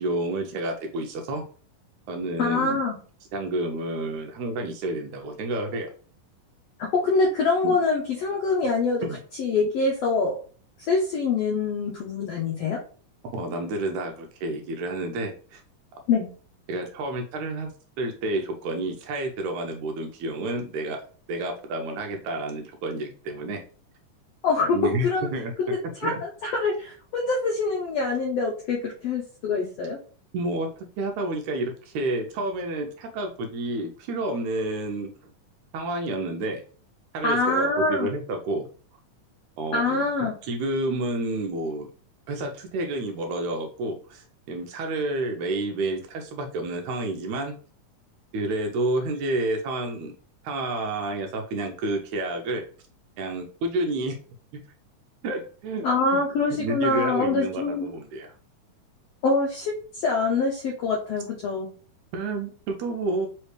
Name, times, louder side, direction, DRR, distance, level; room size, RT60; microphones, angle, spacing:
voice 1, 0.0-1.4 2.1-2.8 3.3-5.9 7.6-7.8 9.0-9.2 13.3-15.6 16.7-17.7 18.0-21.0 21.3-23.6 24.7-25.5 25.8-26.1 30.3-30.7 31.0-35.1 35.7-36.6 37.1-38.7 39.6-40.1 40.4-41.9 42.3-47.6 48.3-50.1 50.4-52.6 53.2-54.2 54.5-54.7 55.2-55.9 56.1-56.2 56.5-58.3 62.1-63.3, right 2 dB, 80° right, 3 dB, 1.8 m, -29 dB
voice 2, 2.4-3.0 6.9-9.1 9.4-10.4 10.9-12.8 16.1-16.3 24.4-25.3 25.6-30.0 37.2-38.1 39.7-40.3 55.8-57.9 59.2-61.7, left 3 dB, 85° left, -1 dB, 1.4 m, -25 dB
4.9 x 3.2 x 3.1 m, 0.42 s
omnidirectional pair, 3.8 m